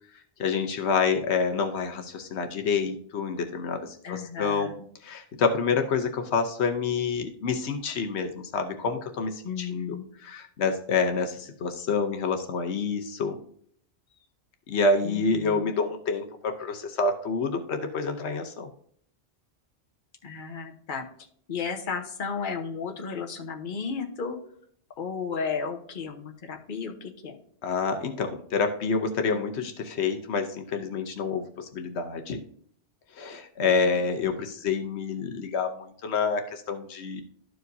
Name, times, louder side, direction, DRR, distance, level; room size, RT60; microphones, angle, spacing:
voice 1, 0.1-4.7 5.0-10.0 10.2-13.4 14.7-18.7 27.6-32.4 33.1-37.2, left 4 dB, 85° left, 5 dB, 1.1 m, -28 dB
voice 2, 4.0-4.9 9.4-10.1 15.0-15.7 20.2-21.1 21.5-24.4 25.0-27.4 33.6-34.0, left 5 dB, 50° left, 5 dB, 1.1 m, -34 dB
12.5 x 4.9 x 2.7 m, 0.62 s
omnidirectional pair, 1.1 m